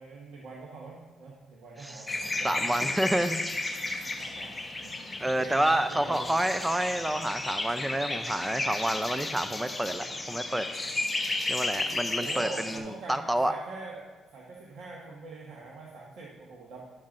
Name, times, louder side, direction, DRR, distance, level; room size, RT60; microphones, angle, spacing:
voice 1, 0.0-2.8 4.2-6.4 12.1-14.1 14.3-16.8, right 3 dB, 75° right, -4 dB, 1.3 m, -44 dB
sound 1, 2.1-12.8, left 2 dB, 15° left, 1.0 m, -33 dB
voice 2, 2.4-3.4 5.2-10.6 11.5-13.5, right 1 dB, 10° right, 10 dB, 0.5 m, -29 dB
12.0 x 7.1 x 2.6 m, 1.3 s
cardioid pair, 90°, 0 cm